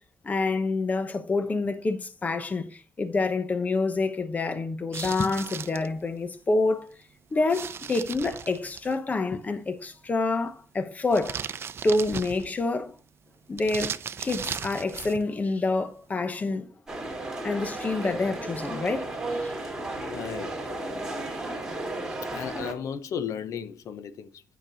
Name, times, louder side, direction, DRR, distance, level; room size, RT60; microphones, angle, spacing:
voice 1, 0.2-6.9 7.3-11.4 11.8-12.9 13.5-13.9 14.2-16.7 17.4-19.1 19.4-19.5, left 3 dB, 30° left, 1.0 m, -27 dB
sound 1, 4.9-5.9 7.5-8.9 11.1-12.7 13.6-15.2, right 7 dB, 50° right, 0.6 m, -36 dB
sound 2, 16.9-22.7, right 2 dB, 10° right, 2.4 m, -34 dB
voice 2, 20.0-21.3 22.3-24.4, left 7 dB, 80° left, 0.8 m, -36 dB
9.0 x 6.0 x 4.0 m
cardioid pair, 135°, 5 cm